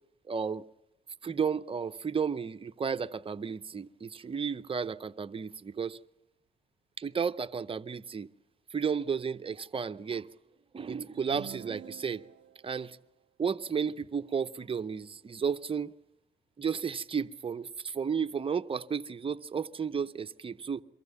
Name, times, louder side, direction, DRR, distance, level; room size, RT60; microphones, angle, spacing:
voice 1, 0.3-0.6 1.2-6.0 7.0-8.3 8.7-10.3 10.7-12.2 12.6-13.0 13.4-15.9 16.6-20.8, right 6 dB, 25° right, 0.7 m, -33 dB
sound 1, 11.1-12.7, right 10 dB, 60° right, 0.7 m, -46 dB
23.5 x 15.0 x 8.2 m
cardioid pair, 90°, 20 cm